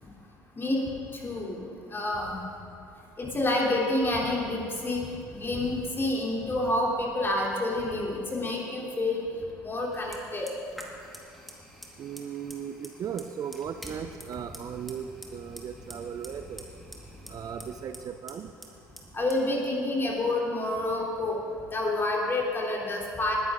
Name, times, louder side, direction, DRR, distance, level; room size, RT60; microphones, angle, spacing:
voice 1, 1.2-1.6 1.9-2.5 3.2-5.0 5.3-9.2 9.6-10.5 19.1-21.4 21.7-23.4, left 2 dB, 25° left, -2 dB, 3.2 m, -28 dB
Fire, 9.9-21.8, equal, ahead, 2.1 m, -48 dB
voice 2, 12.0-16.6 17.3-18.5, right 8 dB, 40° right, 8 dB, 0.6 m, -37 dB
20.0 x 10.0 x 3.8 m, 2.4 s
figure-of-eight pair, 60°, 9 cm